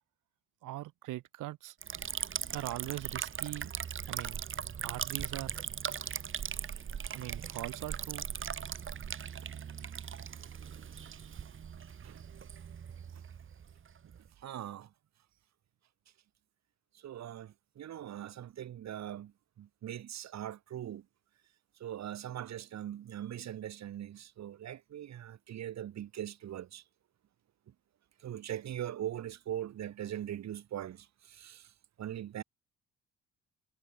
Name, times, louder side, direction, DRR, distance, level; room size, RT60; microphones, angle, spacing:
voice 1, 0.6-1.8 2.5-3.7 4.1-4.4 4.8-5.6 7.1-8.3, right 16 dB, 90° right, 3.9 m, -41 dB
Liquid, 1.8-14.3, right 7 dB, 40° right, 1.4 m, -39 dB
voice 2, 14.4-14.9 17.0-21.0 21.8-26.8 28.2-31.7 32.0-32.4, right 11 dB, 65° right, 1.6 m, -41 dB
cardioid pair, 90°, 30 cm